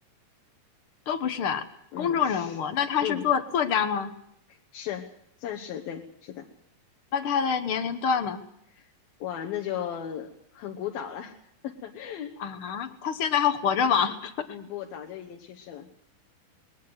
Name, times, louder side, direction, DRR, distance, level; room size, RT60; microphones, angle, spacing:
voice 1, 1.1-1.6 2.0-4.1 7.1-8.4 12.4-14.5, left 7 dB, 65° left, 9 dB, 1.3 m, -26 dB
voice 2, 1.9-2.6 3.0-3.3 4.5-5.1 5.4-6.5 8.8-8.9 9.2-11.4 11.6-12.3 14.5-15.9, left 10 dB, 80° left, 1 dB, 3.2 m, -36 dB
21.5 x 19.0 x 8.0 m, 0.72 s
omnidirectional pair, 4.1 m